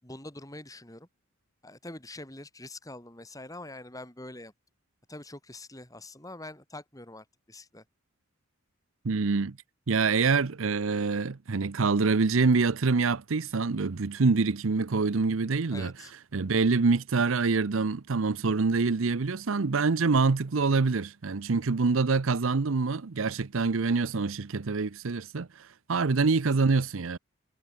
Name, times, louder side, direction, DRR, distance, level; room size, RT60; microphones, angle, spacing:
voice 1, 0.0-1.1 1.6-4.5 5.1-7.8 15.7-16.1 26.2-26.3, left 2 dB, 15° left, 5.9 m, -44 dB
voice 2, 9.0-9.6 9.9-15.9 16.3-27.2, right 4 dB, 70° right, 0.7 m, -26 dB
head